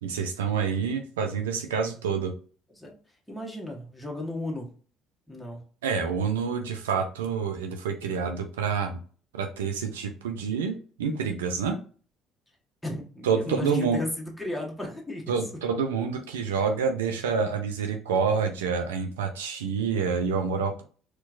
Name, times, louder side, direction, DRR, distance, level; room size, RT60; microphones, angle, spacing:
voice 1, 0.0-2.3 5.8-9.0 9.3-11.8 13.2-14.0 15.3-20.8, right 6 dB, 80° right, 4 dB, 0.4 m, -27 dB
voice 2, 3.3-4.7 5.3-5.6 12.8-15.2, left 1 dB, 5° left, -2 dB, 1.1 m, -34 dB
4.3 x 2.2 x 2.5 m, 0.41 s
hypercardioid pair, 55°, 0 cm